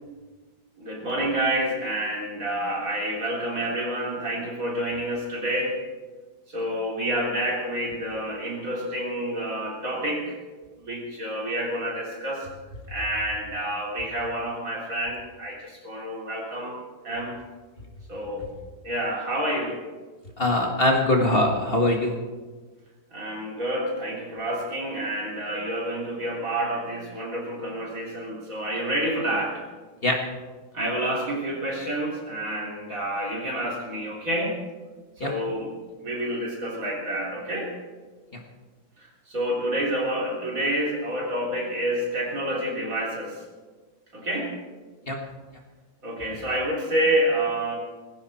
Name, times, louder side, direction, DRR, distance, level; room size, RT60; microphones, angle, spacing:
voice 1, 0.8-5.8 6.5-10.4 10.8-12.5 12.9-16.8 17.0-17.4 18.1-18.5 18.8-19.8 23.1-29.6 30.7-34.6 35.2-35.7 36.0-37.7 39.0-43.4 44.1-44.5 46.0-47.7, right 1 dB, 55° right, -2 dB, 4.1 m, -28 dB
voice 2, 20.4-22.2 30.0-30.2 35.2-35.3 45.1-45.2, left 1 dB, 35° left, 1 dB, 1.9 m, -22 dB
20.5 x 16.0 x 4.3 m, 1.3 s
omnidirectional pair, 1.7 m